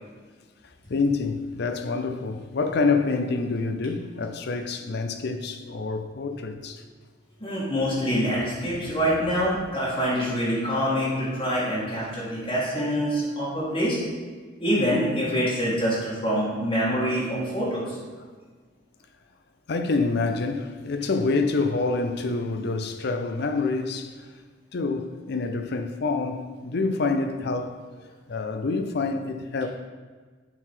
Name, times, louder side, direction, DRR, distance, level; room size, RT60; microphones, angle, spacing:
voice 1, 0.9-6.8 8.4-8.5 8.8-8.9 9.4-9.5 18.2-18.3 19.7-24.3 24.7-27.8 28.3-29.7, left 3 dB, 60° left, 0.6 m, -27 dB
voice 2, 7.4-14.0 14.6-18.0, equal, 30° left, 1.7 m, -25 dB
7.7 x 4.0 x 4.5 m
head